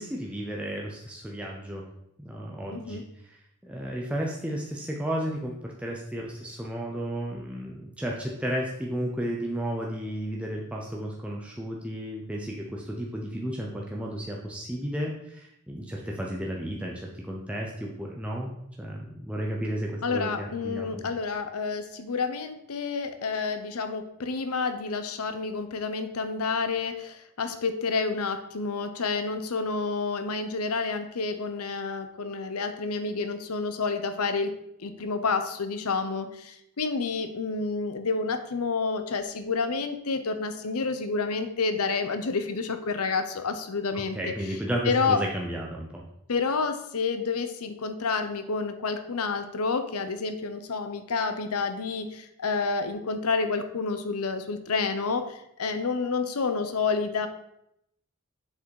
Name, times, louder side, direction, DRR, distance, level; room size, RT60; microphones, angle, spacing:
voice 1, 0.0-1.9 2.2-3.4 3.6-21.0 43.9-46.0, equal, 5° right, -2 dB, 0.6 m, -33 dB
voice 2, 2.7-3.0 20.0-44.3 44.8-45.2 46.3-57.3, left 4 dB, 85° left, 9 dB, 0.7 m, -29 dB
7.1 x 4.9 x 4.6 m, 0.78 s
head